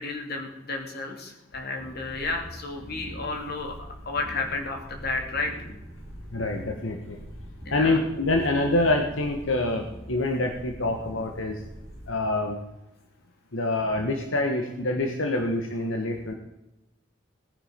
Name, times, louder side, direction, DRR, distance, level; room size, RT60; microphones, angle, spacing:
voice 1, 0.0-3.8 4.0-5.5 7.6-8.0, left 3 dB, 50° left, 3 dB, 2.9 m, -32 dB
sound 1, 1.8-12.1, equal, 35° left, 4.2 m, -43 dB
voice 2, 6.3-7.2 7.7-11.6 12.1-12.6 13.5-16.3, left 2 dB, 80° left, 4 dB, 1.5 m, -26 dB
18.5 x 9.7 x 5.2 m, 0.90 s
head